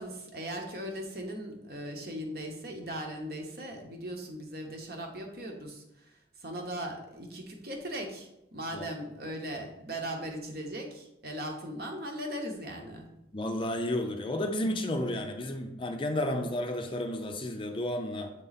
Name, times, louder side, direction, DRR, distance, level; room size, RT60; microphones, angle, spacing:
voice 1, 0.0-13.1, right 1 dB, 55° right, 2 dB, 1.1 m, -39 dB
voice 2, 13.3-18.3, left 1 dB, 30° left, 4 dB, 0.5 m, -32 dB
7.5 x 3.8 x 4.1 m, 0.89 s
head